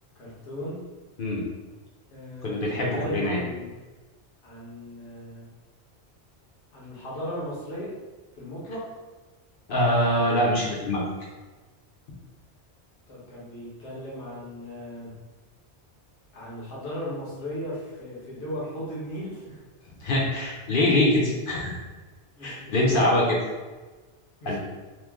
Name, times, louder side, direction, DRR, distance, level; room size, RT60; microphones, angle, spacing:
voice 1, 0.2-0.8 2.1-3.8 4.4-5.5 6.7-7.9 8.3-8.8 13.1-15.1 16.3-19.6 22.3-23.2 24.4-24.6, equal, 80° left, -6 dB, 1.3 m, -36 dB
voice 2, 2.4-3.4 9.7-11.0 20.0-21.7 22.4-23.2 24.4-24.6, left 1 dB, 55° left, -3 dB, 0.8 m, -23 dB
3.0 x 2.2 x 3.4 m, 1.3 s
omnidirectional pair, 1.2 m